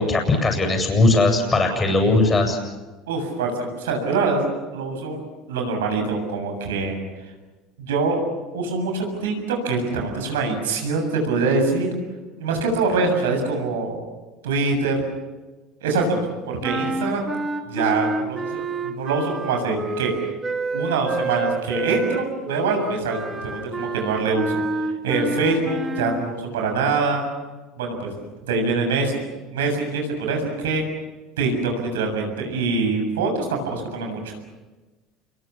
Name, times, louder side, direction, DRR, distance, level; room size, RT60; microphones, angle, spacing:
voice 1, 0.0-2.6, left 2 dB, 25° left, 3 dB, 7.8 m, -19 dB
voice 2, 3.1-5.2 5.5-7.0 7.8-8.2 8.5-11.9 12.4-14.0 14.4-15.0 15.8-16.2 16.5-17.3 17.7-20.1 20.7-24.6 25.0-27.3 27.8-28.1 28.4-29.2 29.5-30.9 31.4-34.4, right 3 dB, 85° right, 3 dB, 7.3 m, -24 dB
sound 1, 16.6-26.3, right 3 dB, 25° right, 2.7 m, -28 dB
28.0 x 22.5 x 7.3 m, 1.2 s
hypercardioid pair, 80°, 0 cm